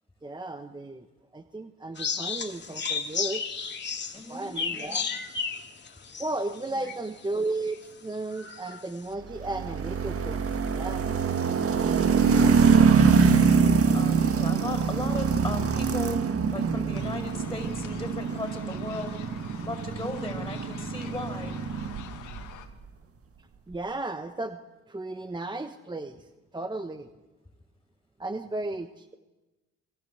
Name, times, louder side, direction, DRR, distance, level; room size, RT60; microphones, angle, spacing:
voice 1, 0.2-1.0 1.3-3.4 4.3-5.0 6.2-10.4 10.7-11.0 23.7-24.6 24.9-26.3 26.5-27.1 28.2-29.1, right 2 dB, 15° right, 8 dB, 1.1 m, -34 dB
sound 1, 2.0-7.2 7.7-7.8 8.3-8.8, left 5 dB, 35° left, 2.4 m, -33 dB
voice 2, 4.1-5.0 6.7-6.9 12.1-12.6 13.9-19.2 19.6-21.6, left 2 dB, 10° left, 5 dB, 5.3 m, -37 dB
sound 2, 9.3-22.5, right 6 dB, 50° right, 1.7 m, -24 dB
sound 3, 16.9-22.7, left 10 dB, 80° left, 2.1 m, -46 dB
28.5 x 22.0 x 8.0 m, 1.1 s
cardioid pair, 90°, 30 cm